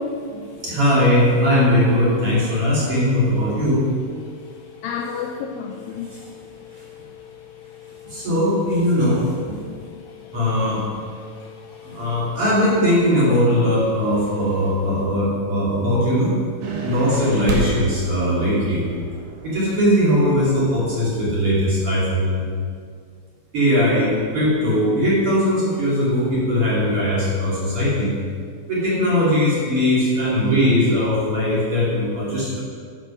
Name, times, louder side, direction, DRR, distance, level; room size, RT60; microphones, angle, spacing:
voice 1, 0.0-0.7 3.5-3.6 4.2-8.3 9.6-12.4 14.0-14.7, left 5 dB, 85° left, 3 dB, 2.1 m, -35 dB
voice 2, 0.6-3.8 6.1-6.3 8.0-9.5 10.3-10.8 11.8-16.3 16.8-18.9 19.4-22.4 23.5-28.1 28.7-32.6, equal, 40° right, -8 dB, 3.1 m, -19 dB
sound 1, 16.6-21.4, right 3 dB, 65° right, 2.5 m, -32 dB
11.5 x 6.8 x 5.0 m, 2.1 s
omnidirectional pair, 4.6 m